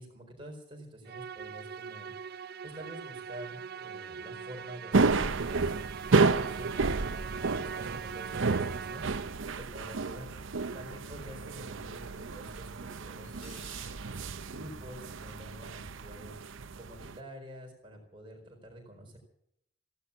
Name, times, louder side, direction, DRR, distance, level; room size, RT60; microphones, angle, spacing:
voice 1, 0.0-2.1 2.6-5.7 6.1-9.1 9.5-10.3 10.7-14.2 14.5-19.2, equal, 25° right, 1 dB, 4.5 m, -48 dB
Musical instrument, 1.1-9.6, right 7 dB, 50° right, 0.5 m, -42 dB
sound 1, 4.9-17.2, right 4 dB, 80° right, 0.8 m, -31 dB
Cutlery silverware, 13.2-14.0, left 5 dB, 90° left, 3.6 m, -54 dB
16.5 x 11.5 x 7.2 m, 0.76 s
head